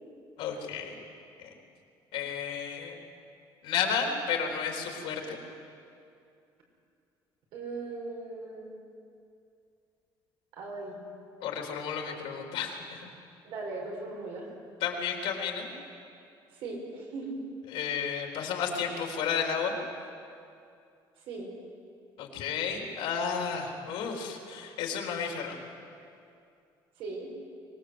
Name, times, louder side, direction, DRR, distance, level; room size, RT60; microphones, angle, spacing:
voice 1, 0.4-1.0 1.4-1.5 2.1-2.9 3.6-5.4 11.4-13.1 14.8-15.7 17.7-19.8 22.2-25.6, left 6 dB, 85° left, 1 dB, 3.8 m, -32 dB
voice 2, 7.5-8.7 10.5-11.0 13.4-14.5 16.5-17.4 21.3-21.5 27.0-27.3, right 3 dB, 80° right, 0 dB, 5.9 m, -38 dB
24.0 x 20.0 x 8.2 m, 2.5 s
cardioid pair, 165°, 9 cm